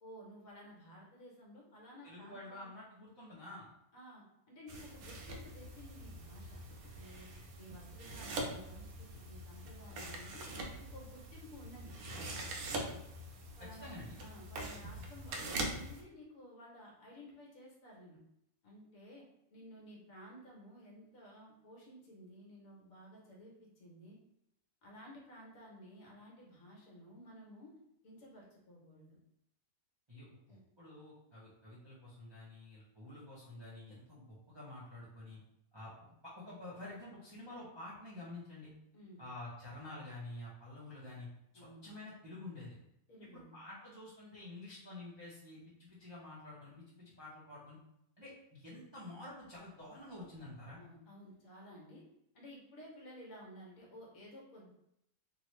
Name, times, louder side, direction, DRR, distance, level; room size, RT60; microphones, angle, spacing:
voice 1, 0.0-2.7 3.9-6.6 6.9-7.3 7.6-10.5 10.8-11.9 13.6-13.9 14.2-18.2 18.6-24.2 24.8-27.7 28.0-29.2 30.5-30.6 38.9-39.2 41.5-41.8 43.1-43.5 50.8-52.0 52.3-54.7, equal, 60° left, -3 dB, 1.2 m, -54 dB
voice 2, 2.0-3.7 13.8-14.1 30.1-30.3 30.8-35.4 35.7-35.9 36.2-38.7 39.2-41.3 41.5-42.7 43.2-47.8 48.2-50.8, left 2 dB, 30° right, -9 dB, 0.5 m, -49 dB
sound 1, 4.7-16.0, right 2 dB, 70° right, 1.0 m, -43 dB
2.9 x 2.5 x 3.0 m, 0.79 s
omnidirectional pair, 1.7 m